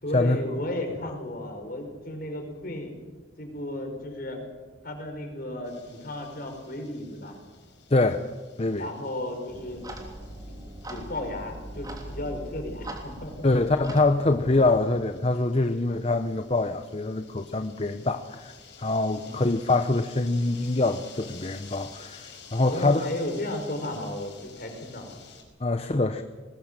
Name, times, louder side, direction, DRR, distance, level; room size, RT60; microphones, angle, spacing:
voice 1, 0.0-2.9 3.4-4.4 4.8-7.4 8.7-9.8 10.3-10.6 10.8-13.5 19.1-19.6 22.6-25.1, left 1 dB, 50° left, 4 dB, 5.0 m, -34 dB
sound 1, 5.6-25.4, left 6 dB, 65° left, 5.4 m, -51 dB
voice 2, 7.9-8.3 8.6-8.9 13.4-18.5 18.8-23.1 25.6-26.2, left 2 dB, 30° left, 8 dB, 0.8 m, -24 dB
Clock, 9.5-14.8, right 1 dB, 20° right, 3.2 m, -40 dB
21.0 x 20.0 x 7.5 m, 1.3 s
head